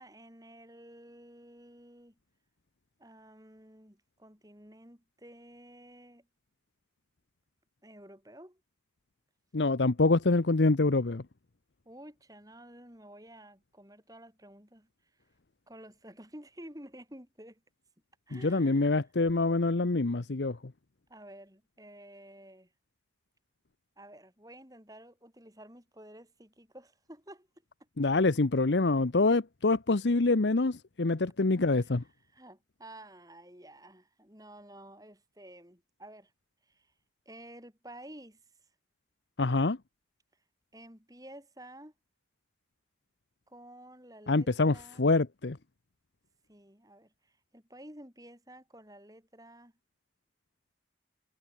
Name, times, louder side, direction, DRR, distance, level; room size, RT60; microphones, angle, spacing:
voice 1, 0.0-2.2 3.0-6.3 7.8-8.6 11.8-14.9 15.7-17.6 18.3-19.1 21.1-22.7 24.0-27.5 27.8-27.9 31.7-32.0 32.3-36.3 36.6-36.9 37.3-38.4 40.7-41.9 43.5-45.0 46.5-49.7, right 1 dB, 20° right, 7.9 m, -51 dB
voice 2, 9.5-11.2 18.3-20.6 28.0-32.0 39.4-39.8 44.3-45.6, left 3 dB, 80° left, 0.9 m, -26 dB
head